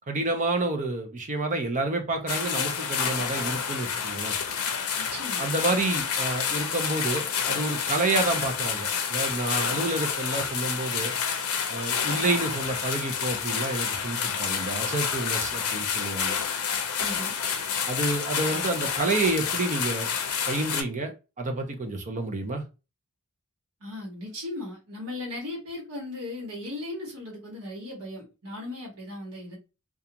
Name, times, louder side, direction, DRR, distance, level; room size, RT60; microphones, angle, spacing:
voice 1, 0.1-4.3 5.4-11.1 11.7-16.4 17.9-20.1 20.5-22.6, right 2 dB, 35° right, 0.6 m, -29 dB
sound 1, 2.3-20.8, left 7 dB, 75° left, 0.6 m, -29 dB
voice 2, 5.0-5.5 17.0-17.3 23.8-29.6, left 2 dB, 90° right, 1.2 m, -37 dB
2.4 x 2.3 x 2.8 m
head